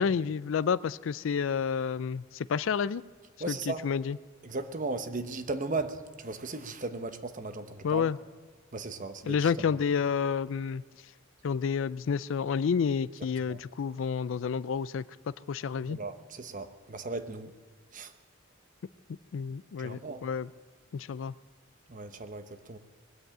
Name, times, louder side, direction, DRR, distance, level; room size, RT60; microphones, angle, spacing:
voice 1, 0.0-3.0 3.5-4.2 7.8-8.2 9.3-10.8 11.4-15.0 15.5-16.0 19.3-20.5 20.9-21.3, left 6 dB, 65° left, 18 dB, 0.4 m, -30 dB
voice 2, 3.4-3.9 4.4-8.1 8.7-9.5 13.5-13.6 15.9-17.5 17.9-18.1 19.8-20.2 21.9-22.8, right 3 dB, 40° right, 9 dB, 0.9 m, -36 dB
21.0 x 8.1 x 8.7 m, 1.5 s
head